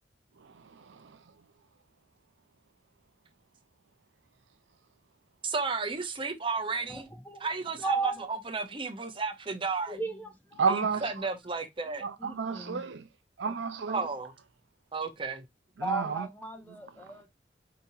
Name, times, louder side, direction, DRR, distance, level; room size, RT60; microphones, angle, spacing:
voice 1, 0.4-1.2 10.6-11.3 12.0-13.0 13.4-14.1 15.8-16.3, right 5 dB, 85° right, 0.5 m, -31 dB
voice 2, 5.4-7.1 7.4-10.0 10.7-12.1 13.9-14.3 14.9-15.4, right 4 dB, 30° right, 0.7 m, -33 dB
voice 3, 6.9-7.5 7.8-8.2 9.9-10.7 11.9-12.8 15.8-17.4, right 3 dB, 10° left, 0.7 m, -36 dB
5.1 x 2.9 x 2.7 m
head